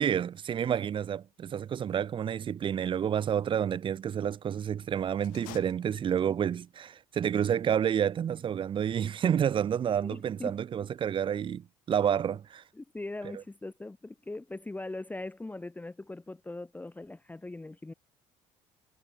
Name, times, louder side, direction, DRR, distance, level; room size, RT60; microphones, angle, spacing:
voice 1, 0.0-12.6, right 8 dB, 35° right, 0.5 m, -29 dB
sound 1, 5.2-6.5, left 24 dB, 80° left, 5.2 m, -50 dB
voice 2, 9.9-10.6 12.7-17.9, left 2 dB, 10° left, 0.8 m, -41 dB
supercardioid pair, 85°, 15 cm